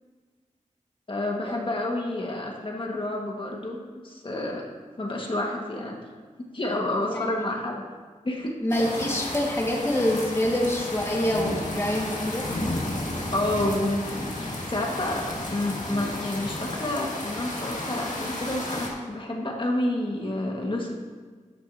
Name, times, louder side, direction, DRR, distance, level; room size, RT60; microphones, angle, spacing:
voice 1, 1.1-3.8 4.0-4.6 5.0-6.0 6.5-7.8 8.2-8.6 13.3-20.9, left 1 dB, 40° left, 0 dB, 1.7 m, -29 dB
voice 2, 7.1-7.4 8.6-12.5, left 1 dB, 20° left, -2 dB, 1.9 m, -26 dB
sound 1, 8.7-18.9, left 1 dB, 80° left, 1.8 m, -32 dB
13.0 x 9.0 x 2.8 m, 1.5 s
wide cardioid pair, 95°, 13 cm